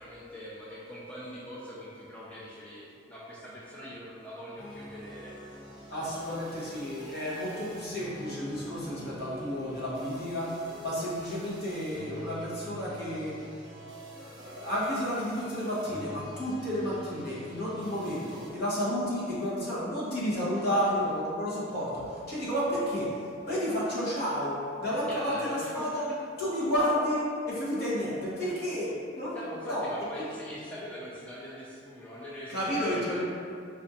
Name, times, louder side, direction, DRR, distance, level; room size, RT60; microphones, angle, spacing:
voice 1, 0.0-5.4 20.6-20.7 25.1-26.2 29.3-33.2, equal, 5° left, -8 dB, 0.4 m, -42 dB
sound 1, 4.6-18.5, equal, 20° right, 0.8 m, -45 dB
voice 2, 5.9-13.4 14.2-26.1 26.4-29.9 32.5-33.2, equal, 55° left, -8 dB, 1.2 m, -31 dB
4.2 x 2.5 x 4.2 m, 2.4 s
head